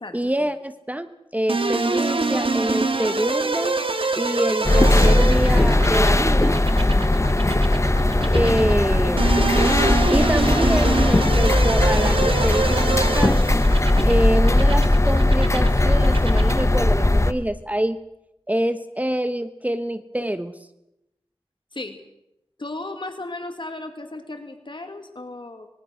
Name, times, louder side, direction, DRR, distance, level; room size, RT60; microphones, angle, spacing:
voice 1, 0.1-3.8 4.2-6.6 8.3-9.4 10.1-13.4 14.1-18.0 18.5-20.6, right 1 dB, 15° right, 10 dB, 1.1 m, -26 dB
sound 1, 1.5-16.8, right 3 dB, 65° right, 1.9 m, -26 dB
sound 2, 4.7-17.3, left 1 dB, 30° left, 1.0 m, -18 dB
voice 2, 22.6-25.7, left 2 dB, 55° left, 6 dB, 2.2 m, -35 dB
25.0 x 21.5 x 6.4 m, 0.88 s
wide cardioid pair, 45°, 10 cm